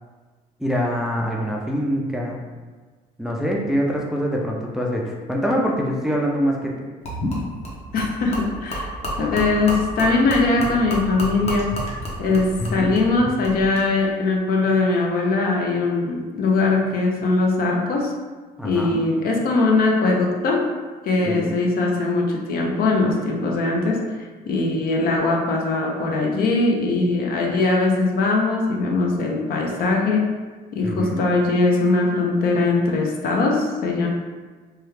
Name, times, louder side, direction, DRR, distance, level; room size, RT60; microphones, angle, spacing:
voice 1, 0.6-2.4 3.2-6.7 12.6-12.9 18.6-19.0 21.2-21.6 30.8-31.3, equal, 5° right, -2 dB, 0.4 m, -24 dB
Gurgling / Liquid, 7.0-13.9, equal, 40° left, 0.9 m, -30 dB
voice 2, 7.9-8.9 9.2-11.7 12.2-12.5 12.7-18.1 18.6-20.6 21.0-24.2 24.5-30.2 30.7-34.1, left 3 dB, 60° left, 0 dB, 0.6 m, -21 dB
3.1 x 2.3 x 3.2 m, 1.4 s
cardioid pair, 110°, 17 cm